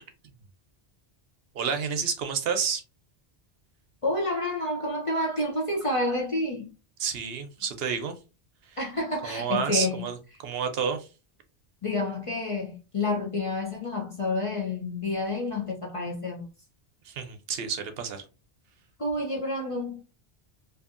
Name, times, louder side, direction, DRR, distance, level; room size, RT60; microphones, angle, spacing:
voice 1, 1.5-2.8 7.0-8.1 8.7-8.8 9.2-10.2 10.4-11.1 17.1-18.2, right 6 dB, 70° right, 0.8 m, -29 dB
voice 2, 4.0-6.7 8.8-10.1 11.8-16.5 19.0-20.0, left 2 dB, 40° left, 0.5 m, -29 dB
2.6 x 2.5 x 2.4 m
omnidirectional pair, 1.1 m